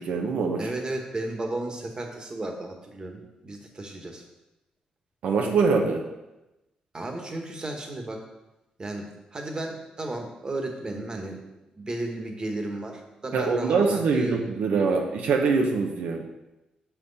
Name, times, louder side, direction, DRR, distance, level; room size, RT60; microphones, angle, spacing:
voice 1, 0.0-0.6 5.2-6.0 13.3-16.2, right 4 dB, 85° right, 2 dB, 0.8 m, -23 dB
voice 2, 0.6-4.2 6.9-8.2 8.8-11.4 11.7-14.4, right 2 dB, 35° right, 3 dB, 1.4 m, -34 dB
6.9 x 5.9 x 4.1 m, 0.98 s
cardioid pair, 85°, 3 cm